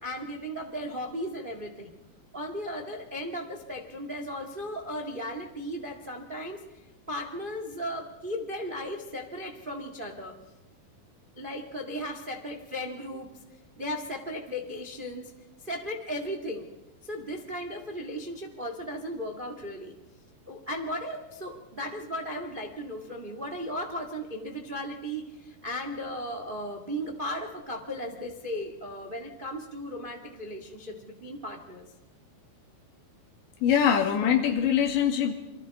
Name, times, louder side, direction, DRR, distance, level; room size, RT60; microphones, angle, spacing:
voice 1, 0.0-2.0 2.3-6.8 7.1-10.3 11.4-13.3 13.8-15.3 15.6-16.7 17.0-19.9 20.4-31.8, equal, 75° right, 3 dB, 0.4 m, -36 dB
voice 2, 33.6-35.3, left 8 dB, 80° left, 3 dB, 4.4 m, -23 dB
28.5 x 24.5 x 4.3 m, 1.1 s
omnidirectional pair, 5.1 m